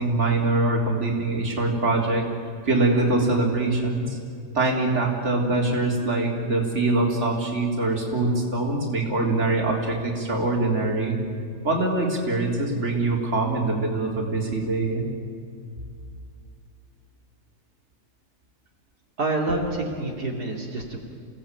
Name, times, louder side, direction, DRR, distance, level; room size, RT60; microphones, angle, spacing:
voice 1, 0.0-2.3 2.7-4.2 4.5-11.2 11.6-15.1, right 2 dB, 45° right, -1 dB, 3.8 m, -23 dB
voice 2, 19.2-21.0, right 2 dB, 75° right, -1 dB, 3.4 m, -27 dB
28.5 x 17.5 x 9.1 m, 2.4 s
omnidirectional pair, 1.7 m